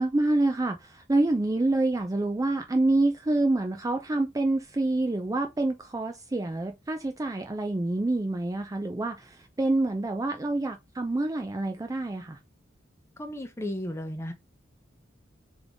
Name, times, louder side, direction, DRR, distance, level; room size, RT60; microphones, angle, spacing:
voice 1, 0.0-12.4, right 2 dB, 15° right, 0.4 m, -27 dB
voice 2, 13.2-14.3, left 1 dB, 15° left, 0.7 m, -34 dB
3.7 x 3.7 x 3.5 m
head